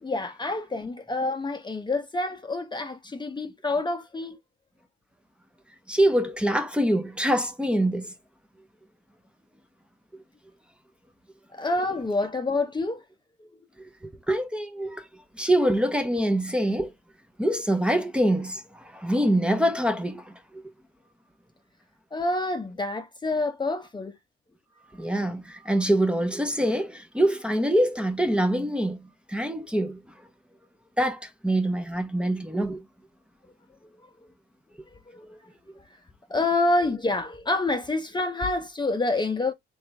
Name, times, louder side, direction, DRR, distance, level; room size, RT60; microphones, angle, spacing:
voice 1, 0.0-4.4 11.5-13.0 13.4-13.5 22.1-24.1 35.1-35.4 36.3-39.5, left 2 dB, 20° left, 0.9 m, -27 dB
voice 2, 5.9-8.1 13.8-13.9 14.3-15.1 15.4-16.9 17.4-20.6 25.0-30.0 31.0-32.8, right 1 dB, 5° right, 1.1 m, -25 dB
3.8 x 3.5 x 3.3 m
cardioid pair, 90°, 20 cm